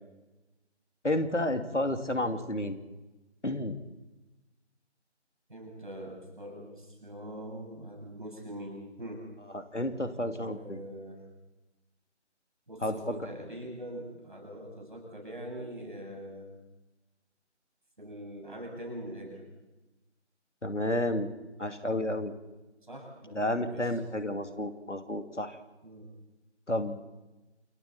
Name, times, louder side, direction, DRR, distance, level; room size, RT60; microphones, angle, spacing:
voice 1, 1.0-2.8 3.4-3.8 9.5-10.8 12.8-12.9 20.6-21.3 21.6-22.3 23.3-25.6 26.7-27.0, left 1 dB, 85° left, 6 dB, 2.8 m, -31 dB
voice 2, 5.5-9.3 10.4-11.2 12.7-16.5 18.0-19.5 22.9-23.9 25.8-26.1, right 1 dB, 45° right, 0 dB, 7.5 m, -43 dB
29.0 x 23.0 x 4.4 m, 1.1 s
figure-of-eight pair, 170°, 35 cm